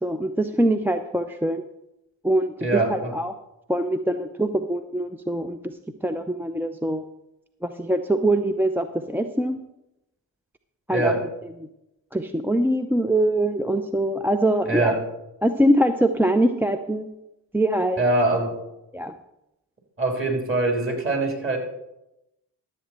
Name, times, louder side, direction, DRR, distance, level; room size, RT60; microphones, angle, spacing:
voice 1, 0.0-1.6 2.2-3.3 3.7-7.0 7.6-9.6 10.9-11.3 12.1-14.9 15.4-17.1 17.5-18.0 18.9-19.1, right 1 dB, 5° right, 8 dB, 0.5 m, -23 dB
voice 2, 2.6-3.1 10.9-11.2 14.7-15.0 18.0-18.5 20.0-21.6, right 2 dB, 30° right, 2 dB, 3.5 m, -23 dB
13.0 x 7.5 x 4.4 m, 0.90 s
supercardioid pair, 50°, 42 cm